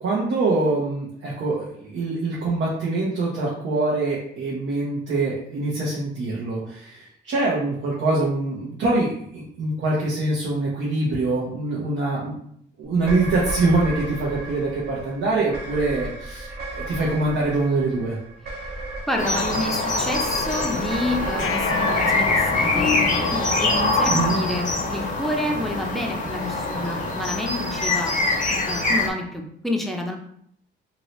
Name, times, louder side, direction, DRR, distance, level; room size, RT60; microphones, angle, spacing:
voice 1, 0.0-12.4 12.8-18.2 24.1-24.4, right 2 dB, 70° right, -5 dB, 0.9 m, -24 dB
sound 1, 13.0-23.4, right 2 dB, 55° right, 1.1 m, -35 dB
voice 2, 19.1-28.4 28.7-30.2, left 1 dB, ahead, 1 dB, 0.6 m, -29 dB
sound 2, 19.2-29.1, left 2 dB, 40° left, 0.8 m, -24 dB
sound 3, 21.4-24.5, left 7 dB, 85° left, 0.4 m, -32 dB
2.8 x 2.8 x 3.1 m, 0.67 s
cardioid pair, 90°, 20 cm